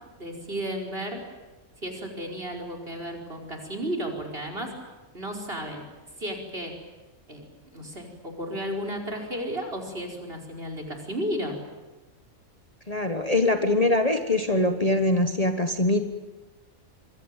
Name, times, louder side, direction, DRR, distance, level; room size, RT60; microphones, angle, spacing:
voice 1, 0.2-1.2 1.8-4.7 5.1-5.9 6.2-6.7 7.3-7.4 7.7-11.6, equal, 45° right, 2 dB, 5.3 m, -33 dB
voice 2, 12.9-16.0, left 2 dB, 30° left, 7 dB, 1.4 m, -23 dB
26.0 x 24.0 x 9.1 m, 1.1 s
omnidirectional pair, 1.4 m